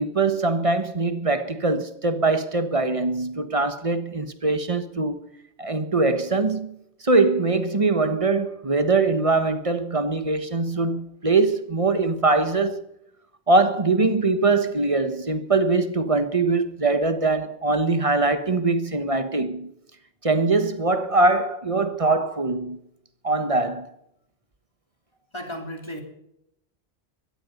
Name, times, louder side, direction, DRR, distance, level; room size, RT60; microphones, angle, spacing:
voice 1, 0.0-5.2 5.6-6.7 7.0-12.8 13.5-19.7 20.2-22.8 23.2-23.9, right 3 dB, 30° right, 1.3 m, -22 dB
voice 2, 25.3-26.0, equal, 25° left, 3.2 m, -34 dB
17.5 x 14.0 x 5.3 m
omnidirectional pair, 1.1 m